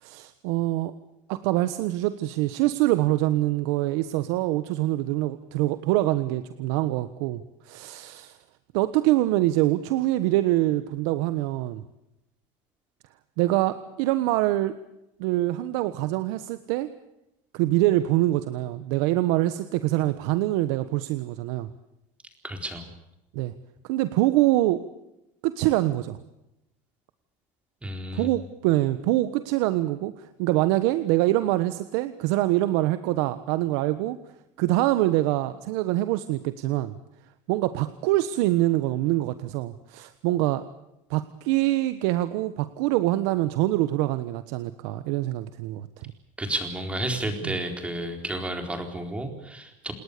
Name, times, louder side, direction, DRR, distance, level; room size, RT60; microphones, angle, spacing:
voice 1, 0.0-0.9 1.3-8.4 8.7-11.8 13.4-14.7 15.2-16.9 17.5-21.7 23.3-23.5 23.8-24.8 25.4-26.2 28.1-34.2 34.6-37.0 37.5-40.6 41.1-46.1 47.4-47.5, right 16 dB, 75° right, 12 dB, 1.3 m, -24 dB
voice 2, 22.4-22.9 27.8-28.3 46.4-49.9, right 1 dB, 10° right, 5 dB, 4.2 m, -31 dB
28.5 x 20.0 x 6.8 m, 0.88 s
cardioid pair, 165°, 14 cm